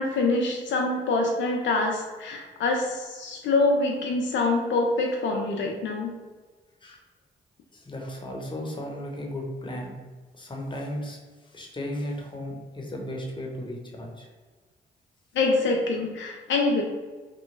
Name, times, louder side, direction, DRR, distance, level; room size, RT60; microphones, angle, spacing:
voice 1, 0.0-6.1 15.3-16.8, left 3 dB, 70° left, 1 dB, 0.4 m, -25 dB
voice 2, 7.7-10.0 10.3-14.3, left 1 dB, 25° left, -1 dB, 0.9 m, -35 dB
3.0 x 2.2 x 3.2 m, 1.3 s
supercardioid pair, 50°, 20 cm